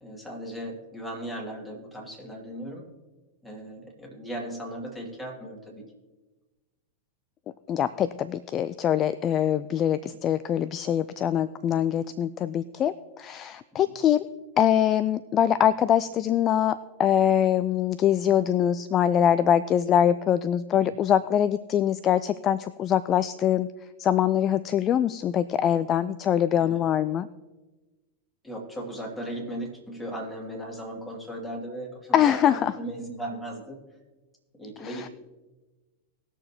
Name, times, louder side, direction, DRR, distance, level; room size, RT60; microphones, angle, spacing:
voice 1, 0.0-2.9 3.4-5.9 20.8-20.9 26.6-26.8 28.4-33.8 34.6-35.1, right 1 dB, 10° left, -2 dB, 2.7 m, -37 dB
voice 2, 7.7-14.3 14.6-23.7 24.0-27.3 32.1-32.8 34.8-35.1, left 10 dB, 30° left, 15 dB, 0.3 m, -23 dB
20.0 x 6.7 x 3.0 m, 1.2 s
figure-of-eight pair, 90°, 0 cm